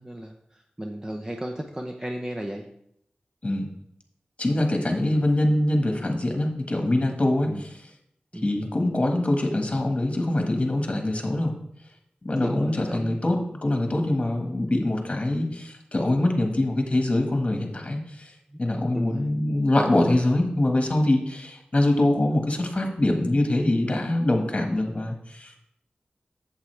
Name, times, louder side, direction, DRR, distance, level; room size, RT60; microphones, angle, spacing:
voice 1, 0.0-2.7 7.4-7.6 8.3-8.5 12.4-13.2 18.5-18.6 18.9-19.3, right 1 dB, 20° right, 2 dB, 0.7 m, -34 dB
voice 2, 4.4-7.7 8.4-11.5 12.2-18.3 18.6-25.6, left 1 dB, 35° left, 4 dB, 1.5 m, -24 dB
8.2 x 7.4 x 3.3 m, 0.73 s
wide cardioid pair, 60°, 3 cm